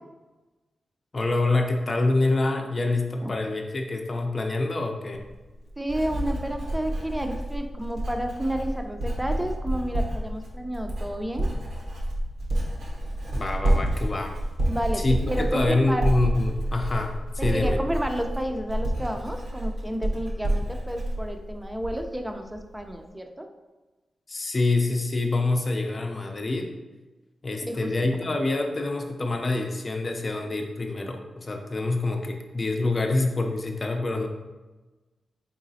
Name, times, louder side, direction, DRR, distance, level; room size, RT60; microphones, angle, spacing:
voice 1, 1.1-5.2 13.3-14.3 14.9-17.8 24.3-26.7 27.4-34.3, left 2 dB, 45° left, 3 dB, 0.6 m, -26 dB
Writing, 5.1-22.2 22.5-22.9, right 1 dB, 80° right, 1.1 m, -29 dB
voice 2, 5.8-11.5 14.7-16.1 17.4-23.5 27.6-27.9, right 1 dB, 15° right, 5 dB, 0.6 m, -31 dB
3.9 x 3.8 x 2.7 m, 1.2 s
cardioid pair, 45°, 0 cm